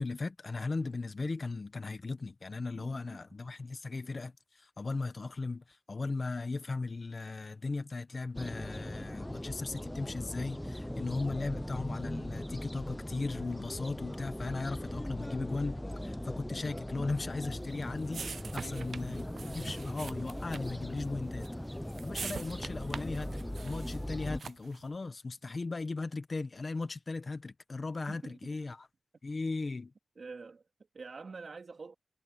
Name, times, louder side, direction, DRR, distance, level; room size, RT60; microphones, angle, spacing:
voice 1, 0.0-21.5 22.0-28.9 29.2-29.9, left 3 dB, 50° left, 1.4 m, -37 dB
voice 2, 2.7-3.2 18.5-19.0 28.1-28.6 30.1-32.0, right 4 dB, 65° right, 3.2 m, -47 dB
sound 1, 8.3-24.4, left 1 dB, 10° left, 0.7 m, -39 dB
sound 2, 17.4-24.8, right 5 dB, 80° right, 0.3 m, -45 dB
wide cardioid pair, 70°, 0 cm